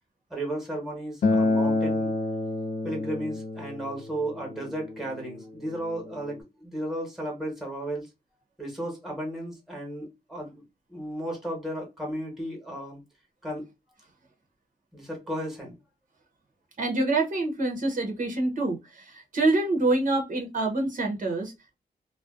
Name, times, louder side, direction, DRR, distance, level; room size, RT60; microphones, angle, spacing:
voice 1, 0.3-2.1 2.8-8.1 8.6-10.6 10.9-13.0 13.4-13.7 14.9-15.8, right 1 dB, ahead, 1.0 m, -34 dB
Acoustic guitar, 1.2-6.4, left 2 dB, 55° left, 0.4 m, -29 dB
voice 2, 16.8-21.8, right 2 dB, 55° right, 0.7 m, -26 dB
2.5 x 2.2 x 2.3 m
wide cardioid pair, 135°, 16 cm